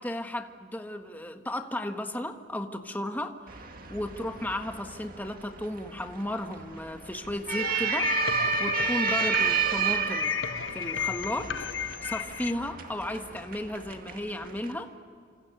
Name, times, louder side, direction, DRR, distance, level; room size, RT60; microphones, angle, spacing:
voice 1, 0.0-3.4 3.9-10.3 10.7-11.7 12.0-14.9, left 1 dB, 10° left, 5 dB, 1.5 m, -34 dB
sound 1, 3.5-14.7, right 5 dB, 50° right, 2.1 m, -32 dB
sound 2, 7.5-12.5, left 8 dB, 80° left, 0.8 m, -34 dB
28.5 x 26.5 x 6.9 m, 2.1 s
head